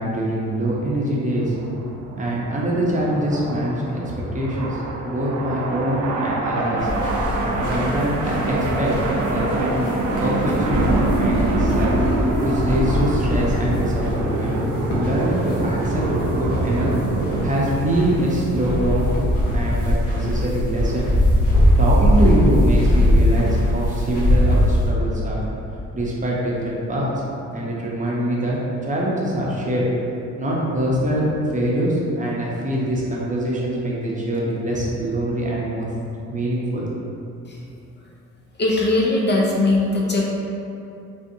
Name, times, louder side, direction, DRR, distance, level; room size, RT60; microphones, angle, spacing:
voice 1, 0.0-1.5 2.2-4.0 4.3-4.8 5.0-6.9 7.4-9.8 10.2-12.0 12.4-14.6 15.0-16.9 17.4-19.1 19.5-21.1 21.8-25.4 25.9-27.1 27.5-28.6 28.9-29.9 30.4-31.2 31.5-35.9 36.3-36.9, right 1 dB, 25° right, -5 dB, 0.7 m, -24 dB
sound 1, 1.3-18.8, right 2 dB, 70° right, 0.5 m, -25 dB
sound 2, 6.8-24.9, left 1 dB, 85° left, 0.9 m, -22 dB
voice 2, 38.6-40.2, left 2 dB, 35° left, -3 dB, 0.5 m, -19 dB
3.4 x 2.5 x 2.7 m, 2.7 s
cardioid pair, 90°, 30 cm